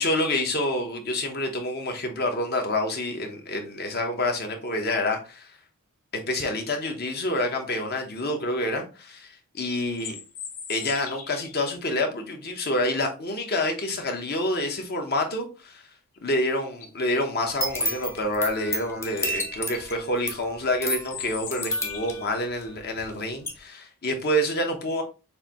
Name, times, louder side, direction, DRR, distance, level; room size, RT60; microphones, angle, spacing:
voice 1, 0.0-5.5 6.1-9.3 9.5-10.2 10.7-15.8 16.2-25.0, left 1 dB, 45° left, 1.0 m, -27 dB
sound 1, 10.0-11.6 16.1-16.2 16.7-17.1 19.1-19.2 19.6-19.8 21.0-22.4, left 7 dB, 80° left, 0.9 m, -39 dB
sound 2, 17.4-23.1 23.4-23.5, equal, 10° left, 0.8 m, -31 dB
6.5 x 2.7 x 3.0 m
head